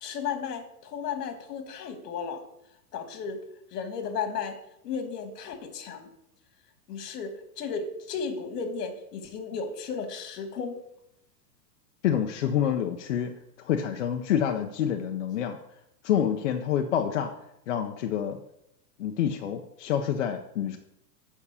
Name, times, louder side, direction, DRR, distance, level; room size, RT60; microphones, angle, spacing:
voice 1, 0.0-2.4 2.9-3.4 3.7-4.6 4.8-6.1 6.9-10.8, left 6 dB, 65° left, 7 dB, 1.7 m, -34 dB
voice 2, 12.0-13.3 13.6-15.6 16.0-17.3 17.7-18.4 19.0-20.8, left 9 dB, 45° left, 4 dB, 0.6 m, -27 dB
7.3 x 5.6 x 6.7 m, 0.81 s
supercardioid pair, 180°, 50 cm